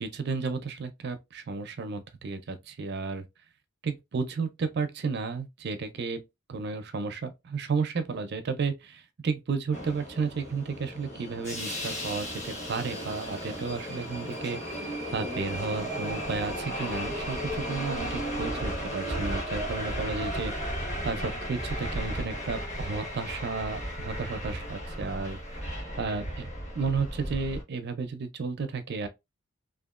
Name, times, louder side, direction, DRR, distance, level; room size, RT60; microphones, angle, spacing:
voice 1, 0.0-3.2 3.8-6.2 6.5-20.5 21.0-25.4 26.0-26.5 26.7-29.1, right 4 dB, 50° right, 0.4 m, -33 dB
Subway metro underground, 9.7-27.6, equal, 35° left, 1.2 m, -35 dB
2.8 x 2.4 x 2.3 m
head